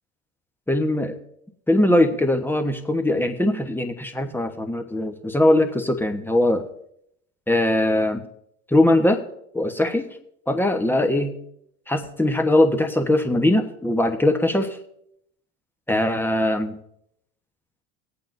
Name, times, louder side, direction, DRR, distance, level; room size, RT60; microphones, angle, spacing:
voice 1, 0.7-1.2 1.7-6.7 7.5-8.2 8.7-9.2 9.5-10.1 10.5-11.3 11.9-14.8 15.9-16.8, left 1 dB, 5° left, 6 dB, 1.1 m, -21 dB
18.0 x 8.6 x 2.6 m, 0.73 s
hypercardioid pair, 80°, 36 cm